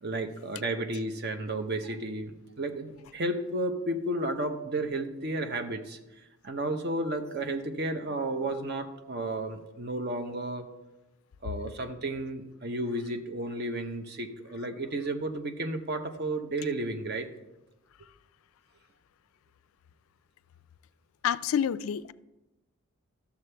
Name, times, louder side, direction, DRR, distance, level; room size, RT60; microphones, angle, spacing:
voice 1, 0.0-6.0 6.4-10.7 11.4-17.3, right 2 dB, 45° right, 7 dB, 0.8 m, -32 dB
voice 2, 21.2-22.1, left 8 dB, 70° left, 17 dB, 0.3 m, -28 dB
12.5 x 7.1 x 3.3 m, 1.0 s
head